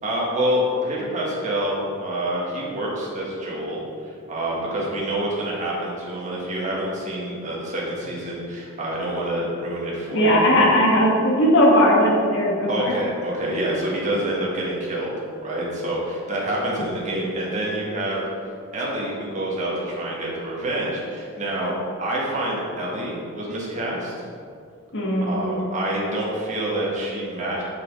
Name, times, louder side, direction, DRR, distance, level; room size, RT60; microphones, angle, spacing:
voice 1, 0.0-3.8 4.1-10.5 12.7-18.2 18.7-24.1 25.2-27.6, right 1 dB, 35° right, -5 dB, 1.7 m, -27 dB
voice 2, 10.1-12.9 24.9-25.5, equal, 60° left, -3 dB, 1.7 m, -18 dB
7.2 x 6.2 x 4.9 m, 2.3 s
head